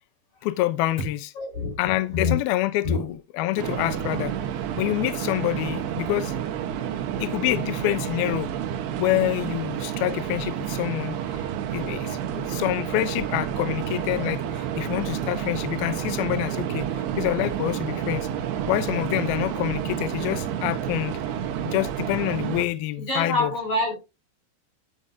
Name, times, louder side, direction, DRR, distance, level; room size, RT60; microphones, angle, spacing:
voice 1, 0.4-1.3 1.8-4.3 4.8-6.4 7.2-8.5 9.0-18.3 18.7-21.2 21.7-23.5, left 15 dB, 80° left, 2.3 m, -27 dB
voice 2, 1.4-1.8 2.1-2.4 2.8-3.1 23.0-24.0, left 3 dB, 40° left, 5.6 m, -26 dB
sound 1, 3.6-22.7, right 9 dB, 70° right, 3.0 m, -30 dB
12.0 x 8.7 x 2.7 m
omnidirectional pair, 5.3 m